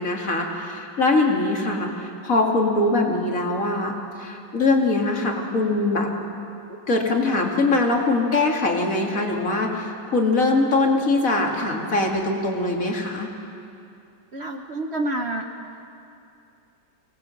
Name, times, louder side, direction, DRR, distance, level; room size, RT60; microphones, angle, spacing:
voice 1, 0.0-3.9 4.2-6.1 6.7-13.3, left 2 dB, 50° left, 0 dB, 2.6 m, -22 dB
voice 2, 14.3-15.4, right 1 dB, 45° right, 3 dB, 1.1 m, -28 dB
24.0 x 19.5 x 7.8 m, 2.6 s
omnidirectional pair, 1.9 m